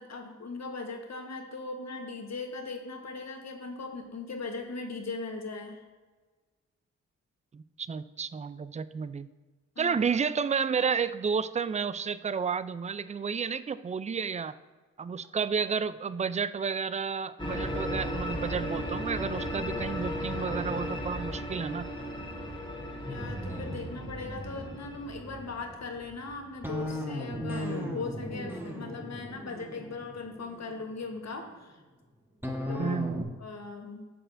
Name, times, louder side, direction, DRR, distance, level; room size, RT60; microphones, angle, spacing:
voice 1, 0.0-5.8 9.8-10.0 23.0-31.8 32.7-33.0 33.4-34.1, left 3 dB, 50° left, 3 dB, 1.3 m, -39 dB
voice 2, 7.5-9.3 9.8-14.5 15.0-21.9 32.8-33.3, right 6 dB, 20° right, 15 dB, 0.4 m, -31 dB
sound 1, 17.4-26.3, equal, 15° left, 1.6 m, -36 dB
sound 2, 23.1-31.3 32.4-33.2, equal, 5° right, 1.3 m, -37 dB
9.9 x 6.7 x 2.6 m, 1.3 s
supercardioid pair, 45°, 33 cm